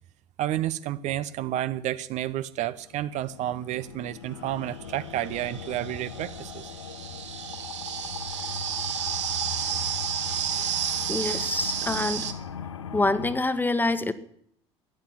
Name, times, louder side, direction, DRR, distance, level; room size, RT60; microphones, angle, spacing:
voice 1, 0.4-6.7 10.5-10.8, right 13 dB, 50° right, 14 dB, 0.8 m, -31 dB
sound 1, 2.7-13.4, left 7 dB, 80° left, 1.1 m, -39 dB
sound 2, 3.9-4.0 4.9-12.3, right 9 dB, 75° right, 1.3 m, -32 dB
voice 2, 11.1-12.3 12.9-14.1, left 2 dB, 10° left, 13 dB, 1.3 m, -26 dB
14.0 x 10.0 x 9.7 m, 0.67 s
figure-of-eight pair, 65°, 15 cm